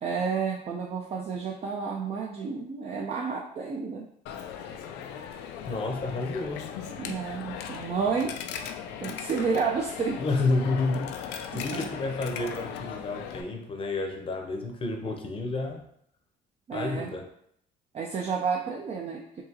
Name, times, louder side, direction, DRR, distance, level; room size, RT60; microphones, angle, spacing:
voice 1, 0.0-4.1 7.0-8.4 9.0-10.2 11.5-11.9 16.7-17.1 17.9-19.4, right 5 dB, 35° right, 0 dB, 0.5 m, -30 dB
Coin (dropping), 4.3-13.4, left 8 dB, 90° left, 0.4 m, -38 dB
voice 2, 5.6-6.7 10.2-15.8 16.7-17.3, left 3 dB, 30° left, 3 dB, 0.7 m, -30 dB
4.6 x 2.8 x 2.9 m, 0.71 s
cardioid pair, 110°, 17 cm